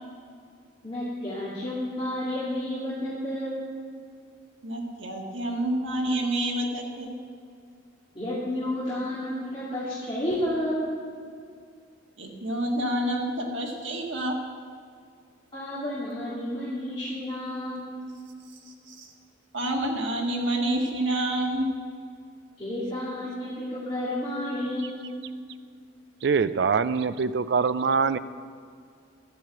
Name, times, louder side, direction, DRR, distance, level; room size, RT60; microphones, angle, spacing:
voice 1, 0.8-3.6 8.1-10.9 15.5-17.9 22.6-25.0, left 1 dB, 25° left, -10 dB, 2.4 m, -31 dB
voice 2, 4.6-7.1 12.2-14.4 18.9-19.1 19.5-21.7, right 1 dB, 80° right, 1 dB, 1.6 m, -28 dB
voice 3, 26.2-28.2, right 5 dB, 60° right, 13 dB, 0.4 m, -23 dB
12.0 x 6.2 x 7.8 m, 2.2 s
head